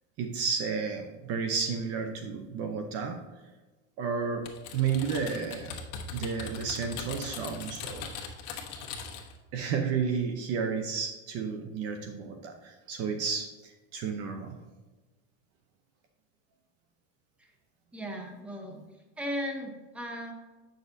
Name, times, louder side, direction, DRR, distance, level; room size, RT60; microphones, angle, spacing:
voice 1, 0.2-3.2 4.0-5.8 6.1-8.1 9.5-14.6, right 6 dB, 40° right, 5 dB, 0.7 m, -32 dB
Typing, 4.5-9.4, left 5 dB, 55° left, 1.3 m, -40 dB
voice 2, 17.9-18.8 19.2-20.3, equal, 5° right, 1 dB, 0.8 m, -36 dB
8.2 x 6.4 x 2.6 m, 1.2 s
supercardioid pair, 150°, 39 cm